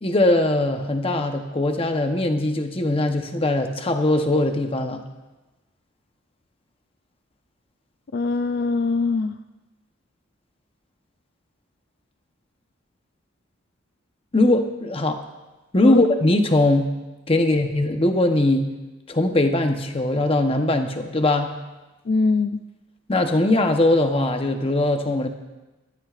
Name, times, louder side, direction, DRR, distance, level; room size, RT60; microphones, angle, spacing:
voice 1, 0.0-5.0 14.3-15.2 15.7-16.9 17.3-18.7 19.1-21.6 23.1-25.3, left 1 dB, 25° left, 5 dB, 0.9 m, -20 dB
voice 2, 8.1-9.4 15.8-16.0 17.3-17.6 22.1-22.6, left 3 dB, 50° left, 9 dB, 0.4 m, -22 dB
20.0 x 13.5 x 2.5 m, 1.1 s
head